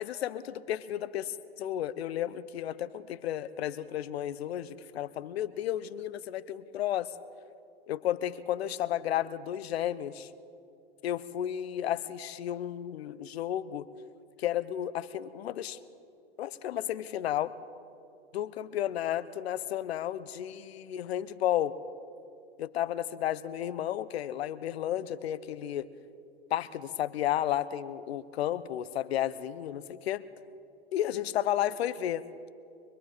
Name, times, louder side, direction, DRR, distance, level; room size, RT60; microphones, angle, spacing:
voice 1, 0.0-7.1 7.9-10.3 11.0-13.9 14.4-15.8 16.4-17.5 18.3-21.8 22.6-25.9 26.5-30.2 30.9-32.2, left 11 dB, 70° left, 17 dB, 1.0 m, -32 dB
24.5 x 23.0 x 5.1 m, 2.5 s
hypercardioid pair, 100°, 32 cm